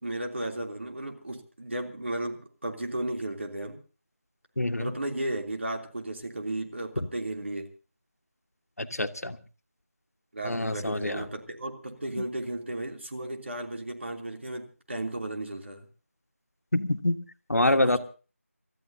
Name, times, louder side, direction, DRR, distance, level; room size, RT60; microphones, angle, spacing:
voice 1, 0.0-3.8 4.8-7.7 10.3-15.9 17.6-18.0, right 1 dB, 50° right, 2 dB, 3.1 m, -34 dB
voice 2, 4.6-4.9 7.0-7.1 8.8-9.4 10.4-11.3 12.2-12.3 16.7-17.2 17.5-18.0, left 1 dB, 85° left, 9 dB, 1.5 m, -26 dB
29.5 x 14.0 x 2.8 m, 0.35 s
figure-of-eight pair, 175°, 8 cm